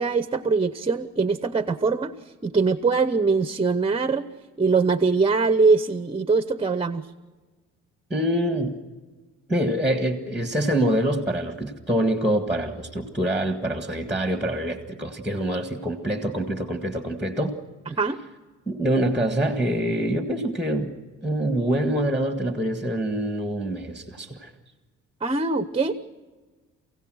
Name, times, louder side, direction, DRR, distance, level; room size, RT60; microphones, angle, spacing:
voice 1, 0.0-4.3 4.6-7.1 17.9-18.2 25.2-25.9, right 4 dB, 20° right, 12 dB, 0.8 m, -22 dB
voice 2, 8.1-8.7 9.5-17.6 17.9-18.0 18.7-21.0 21.2-24.5, right 1 dB, 5° right, 5 dB, 1.8 m, -25 dB
28.5 x 16.5 x 6.4 m, 1.3 s
cardioid pair, 90°, 30 cm